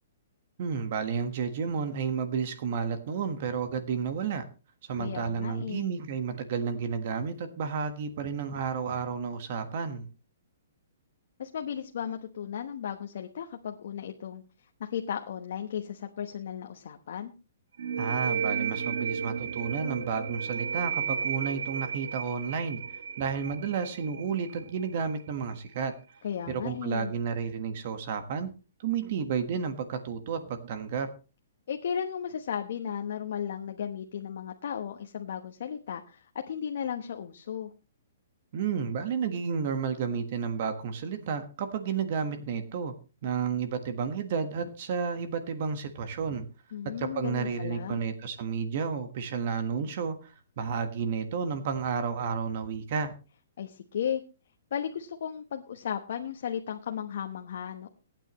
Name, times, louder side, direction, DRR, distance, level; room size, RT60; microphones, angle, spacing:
voice 1, 0.6-4.4 4.8-10.1 18.0-25.9 26.5-28.5 28.8-31.1 38.5-42.9 43.2-46.5 47.0-53.1, right 6 dB, 40° right, 8 dB, 1.4 m, -31 dB
voice 2, 5.0-5.9 11.4-14.4 14.8-17.3 26.2-27.1 31.7-37.7 46.7-48.0 53.6-54.2 54.7-57.9, left 8 dB, 55° left, 5 dB, 1.1 m, -35 dB
sound 1, 17.8-25.2, right 7 dB, 85° right, 1.2 m, -33 dB
23.5 x 9.1 x 3.1 m, 0.33 s
hypercardioid pair, 170°, 0 cm